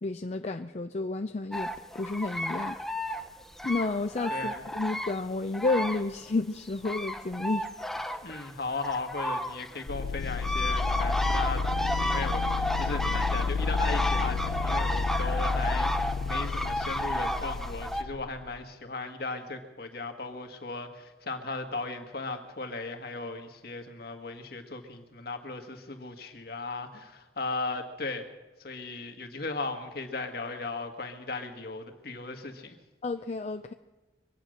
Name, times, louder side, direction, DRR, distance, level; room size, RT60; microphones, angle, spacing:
voice 1, 0.0-2.8 3.6-7.7 33.0-33.7, left 3 dB, 40° left, 7 dB, 0.5 m, -31 dB
sound 1, 1.5-6.3 6.6-18.0, equal, ahead, 0.8 m, -32 dB
voice 2, 4.3-4.6 8.2-28.2 28.6-32.8, left 3 dB, 60° left, 5 dB, 1.7 m, -37 dB
sound 2, 9.9-18.6, left 4 dB, 85° left, 0.6 m, -31 dB
24.0 x 9.3 x 6.5 m, 1.1 s
head